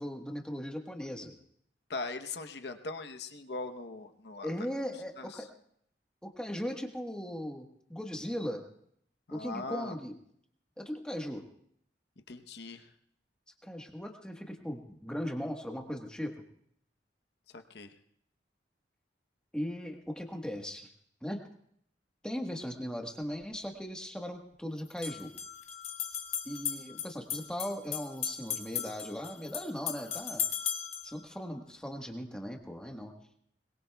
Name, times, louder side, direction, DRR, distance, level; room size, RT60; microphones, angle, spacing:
voice 1, 0.0-1.3 4.4-5.5 6.2-8.6 9.3-10.1 10.8-11.4 13.6-16.3 19.5-20.9 21.2-21.4 22.2-25.3 26.4-30.4 31.0-33.1, equal, 5° left, 2 dB, 1.3 m, -38 dB
voice 2, 1.9-4.5 5.2-5.5 9.3-9.9 12.3-12.9 17.5-17.9, left 3 dB, 65° left, 6 dB, 1.0 m, -40 dB
sound 1, 23.2-23.3 24.9-31.1, left 8 dB, 40° left, 1.1 m, -37 dB
22.0 x 21.5 x 2.3 m, 0.68 s
head